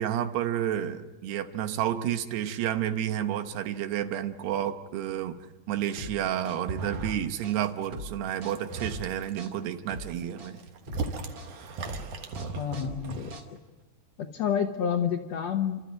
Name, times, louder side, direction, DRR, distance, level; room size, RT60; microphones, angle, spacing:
voice 1, 0.0-5.4 5.7-10.6, right 10 dB, 80° right, 9 dB, 3.2 m, -30 dB
sound 1, 6.0-13.8, equal, 35° right, 3.0 m, -42 dB
sound 2, 6.6-7.3 7.6-8.0 8.4-9.3 9.9-13.4, right 4 dB, 55° right, 1.9 m, -37 dB
voice 2, 12.6-13.3 14.3-15.8, left 8 dB, 75° left, 5 dB, 1.5 m, -28 dB
30.0 x 13.5 x 9.3 m, 1.1 s
omnidirectional pair, 4.7 m